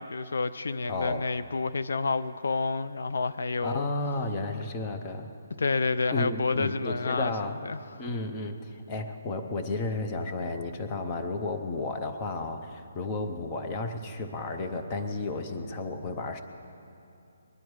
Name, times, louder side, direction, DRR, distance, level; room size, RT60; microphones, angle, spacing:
voice 1, 0.0-3.9 5.6-7.3 7.6-7.8, left 4 dB, 70° left, 13 dB, 0.4 m, -29 dB
voice 2, 0.9-1.2 3.6-5.3 6.1-7.6 8.0-16.4, left 3 dB, 15° left, 5 dB, 0.6 m, -32 dB
21.0 x 10.5 x 4.7 m, 2.6 s
hypercardioid pair, 175°, 0 cm